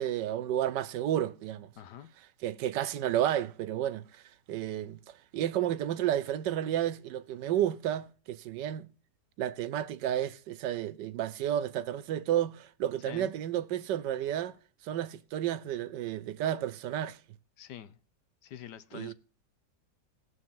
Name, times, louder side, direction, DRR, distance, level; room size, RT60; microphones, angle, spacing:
voice 1, 0.0-1.7 2.4-4.2 4.5-5.0 5.3-8.9 9.4-14.6 14.8-17.2 18.9-19.1, right 11 dB, 85° right, 1.4 m, -31 dB
voice 2, 1.8-2.1 13.1-13.3 17.6-18.0 18.4-19.1, left 10 dB, 75° left, 1.4 m, -45 dB
19.0 x 6.6 x 3.6 m
omnidirectional pair, 1.8 m